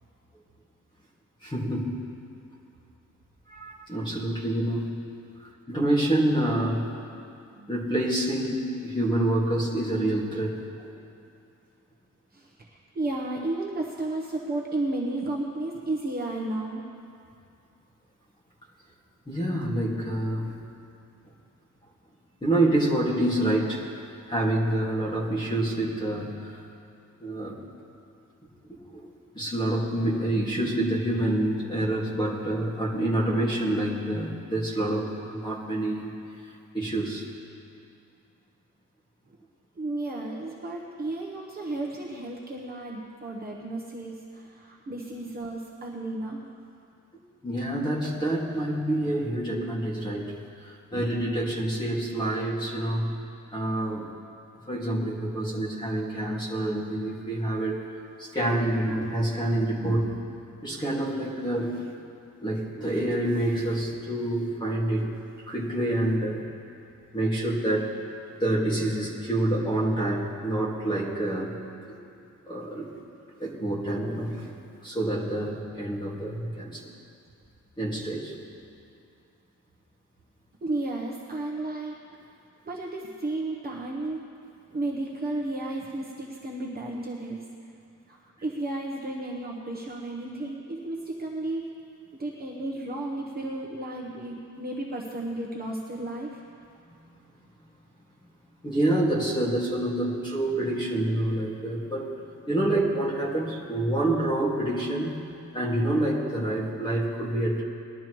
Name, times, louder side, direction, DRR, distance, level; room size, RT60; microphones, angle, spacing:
voice 1, 1.4-1.9 3.5-4.9 5.7-6.9 7.7-10.9 19.3-20.6 22.4-23.8 24.3-26.6 27.2-27.5 28.7-29.1 29.3-36.1 36.7-37.3 47.4-50.3 50.6-53.1 53.5-54.1 54.7-57.8 58.2-60.1 60.6-61.8 62.4-65.1 65.5-66.5 67.1-67.9 68.4-71.6 71.9-72.0 72.5-73.0 73.4-74.5 74.8-76.9 77.8-78.3 96.9-97.0 98.6-102.1 102.5-105.1 105.5-107.6, right 1 dB, 15° left, -5 dB, 2.1 m, -27 dB
voice 2, 12.3-16.8 39.8-46.4 80.6-82.0 82.7-84.2 84.7-87.4 88.1-91.6 92.2-96.4, right 2 dB, 30° right, -2 dB, 1.0 m, -33 dB
20.0 x 12.0 x 3.1 m, 2.5 s
wide cardioid pair, 175°, 32 cm